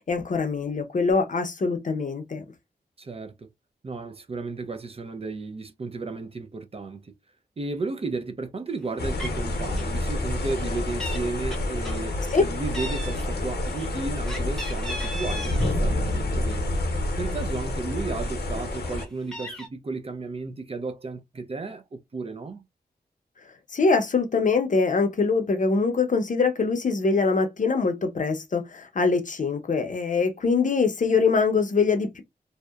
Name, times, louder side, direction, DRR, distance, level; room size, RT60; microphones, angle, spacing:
voice 1, 0.1-2.4 12.3-12.5 23.7-32.2, left 4 dB, 50° left, 0.6 m, -23 dB
voice 2, 3.0-3.5 3.8-7.1 7.6-16.7 17.2-22.6, right 3 dB, 35° right, 0.4 m, -34 dB
Meow, 8.8-8.9 9.2-9.5 9.7-10.0 10.3-11.2 11.5-12.4 12.7-15.7 16.1-17.3 17.7-17.8 18.1-19.7, equal, 5° left, 0.8 m, -38 dB
sound 1, 9.0-19.0, left 1 dB, 85° left, 0.8 m, -28 dB
2.7 x 2.1 x 2.3 m
wide cardioid pair, 75°, 17 cm